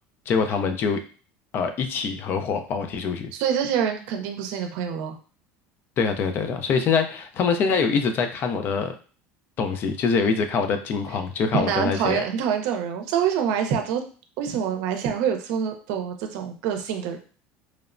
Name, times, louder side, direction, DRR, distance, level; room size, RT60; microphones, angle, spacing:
voice 1, 0.3-1.0 1.5-3.3 6.0-8.9 9.6-12.2, left 5 dB, 40° left, 7 dB, 0.4 m, -24 dB
voice 2, 3.4-5.2 11.5-14.0 14.4-17.2, right 8 dB, 70° right, 5 dB, 0.5 m, -26 dB
3.0 x 2.0 x 2.4 m, 0.39 s
cardioid pair, 135°, 5 cm